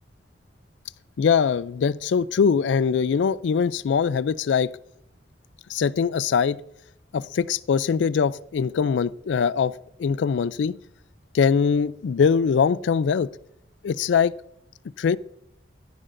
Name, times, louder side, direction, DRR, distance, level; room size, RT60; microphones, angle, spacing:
voice 1, 1.2-4.7 5.7-6.6 7.1-9.7 10.0-10.8 11.3-13.3 13.8-14.3 15.0-15.2, left 6 dB, 85° left, 0.3 m, -22 dB
14.0 x 11.0 x 2.6 m
head